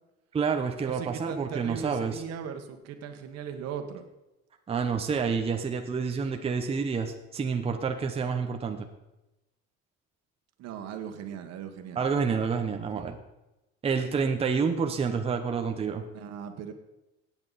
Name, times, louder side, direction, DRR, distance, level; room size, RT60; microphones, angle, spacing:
voice 1, 0.3-2.2 4.7-8.9 12.0-13.2 13.8-16.0, right 5 dB, 20° right, 4 dB, 0.9 m, -28 dB
voice 2, 0.8-4.1 10.6-12.0 12.9-13.1 16.1-16.7, right 7 dB, 60° right, 6 dB, 1.6 m, -38 dB
17.0 x 9.0 x 4.1 m, 0.98 s
cardioid pair, 150°, 29 cm